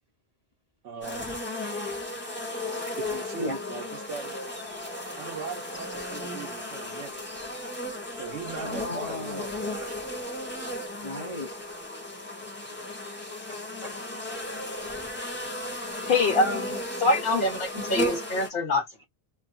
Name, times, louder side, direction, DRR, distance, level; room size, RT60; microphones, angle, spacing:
voice 1, 0.8-1.4 3.0-4.4 5.1-7.3 8.2-9.9 16.0-16.1, right 6 dB, 90° right, 1.3 m, -40 dB
sound 1, 1.0-18.5, left 1 dB, 10° left, 1.1 m, -35 dB
voice 2, 8.6-9.4 11.0-11.5 13.5-14.1, left 1 dB, 35° left, 1.0 m, -35 dB
voice 3, 16.1-19.0, left 2 dB, 55° left, 1.5 m, -25 dB
3.4 x 2.2 x 2.5 m
omnidirectional pair, 1.2 m